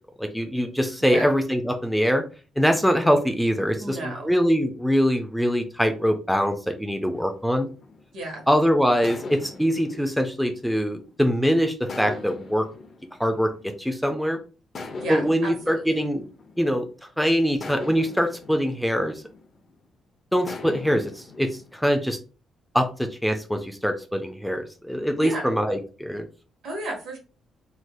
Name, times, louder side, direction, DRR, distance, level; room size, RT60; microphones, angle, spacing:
voice 1, 0.2-2.2 2.6-7.7 8.5-12.7 13.2-13.5 13.8-14.4 15.1-16.3 16.6-16.9 17.2-19.2 20.3-22.2 22.7-26.3, equal, ahead, 6 dB, 0.4 m, -23 dB
voice 2, 3.8-4.3 8.1-8.5 15.0-16.0 25.2-25.5 26.6-27.2, right 2 dB, 70° right, 1 dB, 1.2 m, -33 dB
sound 1, 7.1-8.4 9.0-11.3 11.9-14.1 14.7-17.0 17.6-19.9 20.5-22.0, left 3 dB, 45° left, 0.7 m, -41 dB
3.2 x 2.6 x 2.3 m, 0.35 s
cardioid pair, 90°, 0 cm